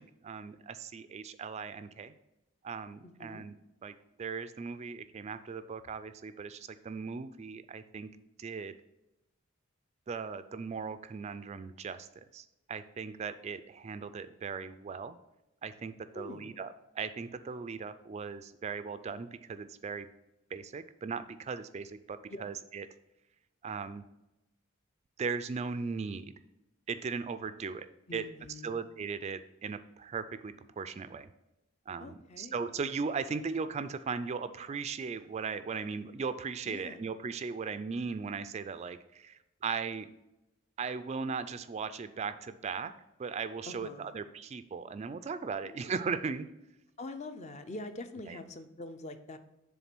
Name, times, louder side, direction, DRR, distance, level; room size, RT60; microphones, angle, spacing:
voice 1, 0.0-2.1 2.6-3.5 3.8-8.1 8.4-8.7 10.1-12.1 12.3-15.2 15.6-20.1 20.5-22.9 23.6-24.0 25.2-26.3 26.9-28.3 28.6-31.3 31.9-40.1 40.8-42.9 43.2-46.5 48.3-48.4, right 5 dB, 35° right, 12 dB, 0.3 m, -38 dB
voice 2, 3.0-3.4 16.1-16.5 22.3-22.5 28.1-28.8 32.0-32.5 36.6-37.0 43.7-44.2 45.6-45.8 47.0-49.4, left 2 dB, 35° left, 9 dB, 0.5 m, -44 dB
7.1 x 3.6 x 6.0 m, 0.93 s
head